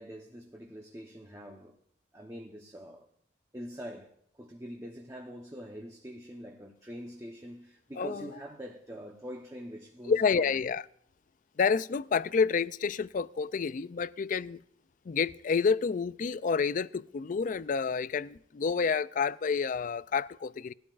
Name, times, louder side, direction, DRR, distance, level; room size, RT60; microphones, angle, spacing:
voice 1, 0.0-1.8 2.1-3.1 3.5-10.6, equal, 15° right, 0.9 m, -44 dB
voice 2, 10.1-10.8 11.6-14.6 15.1-20.7, left 5 dB, 45° left, 0.4 m, -29 dB
19.5 x 13.0 x 2.5 m
head